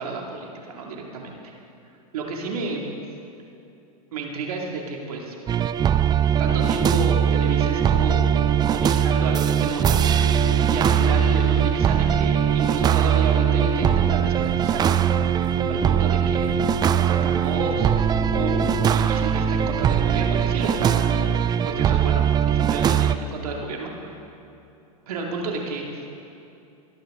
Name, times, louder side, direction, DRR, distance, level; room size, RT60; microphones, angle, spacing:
voice 1, 0.0-1.5 2.1-2.8 4.1-5.4 6.4-8.3 8.6-10.0 10.7-15.1 15.7-17.9 18.3-21.3 21.6-24.2 25.1-26.2, right 4 dB, 80° right, 0 dB, 2.5 m, -31 dB
sound 1, 5.5-23.2, right 9 dB, 20° right, 0.4 m, -21 dB
sound 2, 6.4-19.1, left 5 dB, 55° left, 1.3 m, -35 dB
20.0 x 13.0 x 3.8 m, 2.7 s
hypercardioid pair, 110°, 19 cm